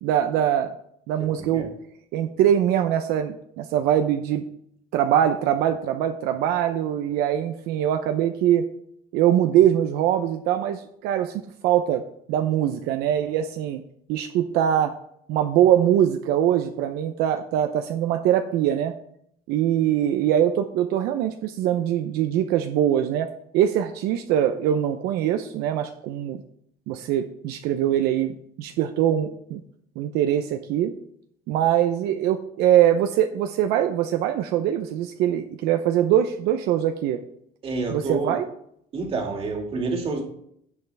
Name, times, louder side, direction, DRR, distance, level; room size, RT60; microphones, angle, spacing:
voice 1, 0.0-0.7 1.1-1.7 2.1-4.4 4.9-8.6 9.1-12.0 12.3-13.8 14.1-14.9 15.3-18.9 19.5-23.3 23.5-26.4 26.9-29.6 30.0-30.9 31.5-37.2 37.9-38.5, right 10 dB, 75° right, 7 dB, 0.7 m, -22 dB
voice 2, 37.6-38.4 38.9-40.2, right 3 dB, 35° right, 2 dB, 2.2 m, -28 dB
16.5 x 5.6 x 3.4 m, 0.70 s
cardioid pair, 145°, 16 cm